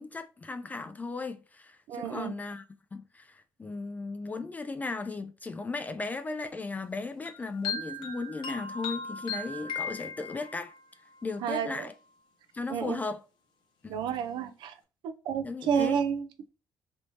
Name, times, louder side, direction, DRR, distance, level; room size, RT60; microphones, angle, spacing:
voice 1, 0.0-2.6 2.9-10.7 11.2-11.9 12.5-13.2 13.8-14.0 15.4-16.0, left 3 dB, 20° left, 0.3 m, -36 dB
voice 2, 1.9-2.3 11.4-11.8 12.7-13.0 13.9-14.7 15.0-16.5, right 8 dB, 85° right, 0.4 m, -31 dB
sound 1, 7.3-10.8, left 4 dB, 80° left, 0.7 m, -37 dB
3.4 x 3.0 x 2.6 m
cardioid pair, 120°, 8 cm